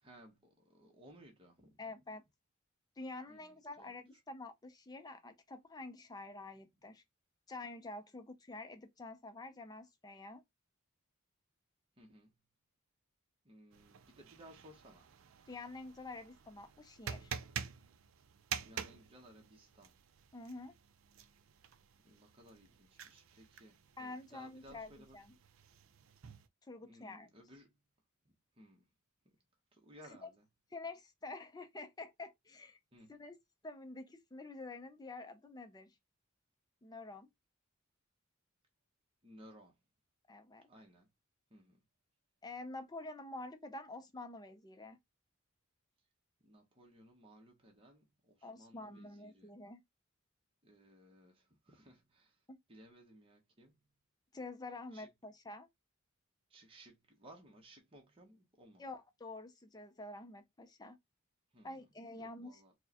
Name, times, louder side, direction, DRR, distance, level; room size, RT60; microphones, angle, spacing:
voice 1, 0.0-1.9 3.3-4.2 12.0-12.4 13.4-15.1 18.6-20.0 22.0-25.2 26.8-27.8 28.2-28.9 29.2-29.4 29.7-30.4 32.9-33.2 39.2-39.8 40.7-41.1 41.5-41.8 46.4-49.5 50.6-53.8 54.9-55.1 56.5-58.8 61.5-61.8 62.2-62.7, equal, 25° right, 0.8 m, -60 dB
voice 2, 1.8-2.2 3.0-7.0 7.5-10.4 15.5-17.3 20.3-20.7 24.0-25.3 26.6-27.3 30.2-30.3 30.7-32.8 33.1-33.4 33.6-35.9 36.8-37.3 40.3-40.7 42.4-45.0 48.4-49.8 52.5-52.6 54.3-55.7 58.8-61.0 61.6-62.6, left 2 dB, 20° left, 0.5 m, -48 dB
sound 1, 13.7-26.5, right 8 dB, 65° right, 0.4 m, -48 dB
4.5 x 2.1 x 2.8 m
head